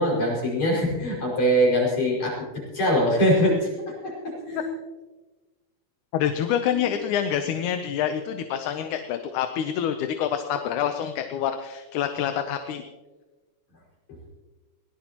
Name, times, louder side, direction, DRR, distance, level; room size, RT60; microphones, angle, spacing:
voice 1, 0.0-2.4 2.7-4.7 6.7-6.8, equal, 60° left, -4 dB, 6.8 m, -23 dB
voice 2, 6.1-12.8, left 9 dB, 80° left, 7 dB, 2.3 m, -27 dB
22.0 x 18.0 x 3.0 m, 1.2 s
omnidirectional pair, 3.5 m